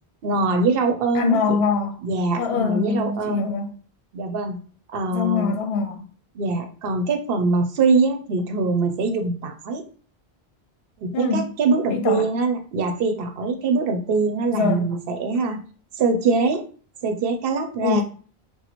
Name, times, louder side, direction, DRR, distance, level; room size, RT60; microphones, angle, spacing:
voice 1, 0.2-1.6 2.0-3.4 4.1-4.6 4.9-5.6 6.3-9.8 11.0-15.6 16.0-16.6 17.0-18.0, right 3 dB, 70° right, 6 dB, 0.7 m, -23 dB
voice 2, 1.1-2.0 2.4-3.7 5.1-6.0 11.1-11.5 11.9-12.3 14.5-14.9 17.8-18.0, left 5 dB, 75° left, 5 dB, 0.8 m, -23 dB
2.9 x 2.1 x 4.1 m, 0.41 s
omnidirectional pair, 1.1 m